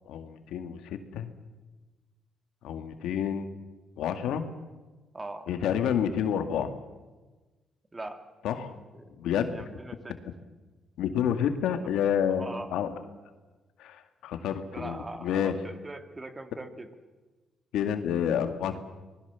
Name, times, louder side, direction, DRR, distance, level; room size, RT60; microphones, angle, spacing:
voice 1, 0.1-1.3 2.6-3.5 4.0-4.4 5.5-6.7 8.4-8.7 9.2-9.5 11.0-12.9 13.8-15.5 17.7-18.8, left 8 dB, 85° left, 8 dB, 2.1 m, -29 dB
voice 2, 5.1-5.5 7.9-8.2 8.9-9.1 9.5-10.2 11.7-11.9 12.3-12.7 14.7-16.9, right 2 dB, 20° right, 7 dB, 2.5 m, -41 dB
25.5 x 19.5 x 7.1 m, 1.2 s
cardioid pair, 90°, 0 cm